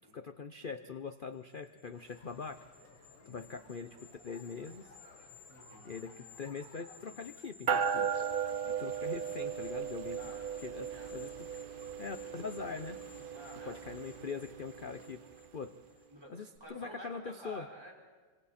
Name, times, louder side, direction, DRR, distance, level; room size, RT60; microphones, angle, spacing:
voice 1, 0.1-2.7 3.3-4.9 5.8-8.1 8.7-10.2 10.6-11.3 12.0-13.0 13.6-15.2 15.5-15.7 16.3-17.7, left 5 dB, 55° left, 9 dB, 0.6 m, -42 dB
sound 1, 1.4-16.1 16.4-16.6, left 5 dB, 30° right, 5.9 m, -57 dB
Ambience Outdoor Public Pool A, 1.9-7.5, left 2 dB, 85° left, 3.7 m, -59 dB
voice 2, 5.5-5.9 10.2-11.2 13.3-13.8 16.1-17.9, equal, 15° right, -2 dB, 5.2 m, -51 dB
sound 2, 7.7-15.4, right 7 dB, 85° right, 0.4 m, -37 dB
27.0 x 26.5 x 4.3 m, 1.4 s
omnidirectional pair, 1.9 m